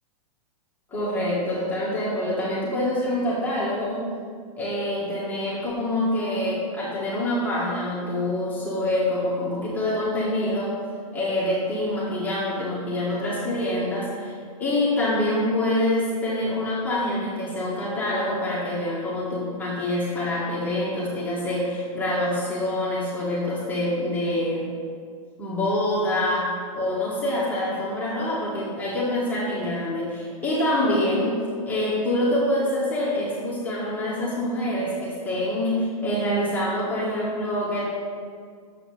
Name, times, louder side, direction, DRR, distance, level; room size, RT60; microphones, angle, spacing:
voice 1, 0.9-4.1 4.6-10.8 11.1-24.6 25.4-37.8, left 1 dB, 10° left, -8 dB, 1.5 m, -26 dB
7.1 x 4.9 x 6.5 m, 2.1 s
hypercardioid pair, 145°, 19 cm